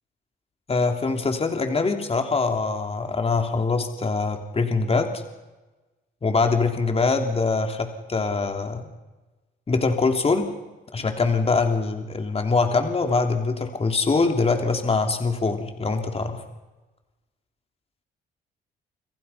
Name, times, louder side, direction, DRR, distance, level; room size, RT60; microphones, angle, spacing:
voice 1, 0.7-5.2 6.2-8.9 9.7-10.5 10.9-16.4, left 4 dB, 30° left, 4 dB, 3.2 m, -23 dB
29.5 x 26.5 x 5.8 m, 1.1 s
cardioid pair, 90°, 20 cm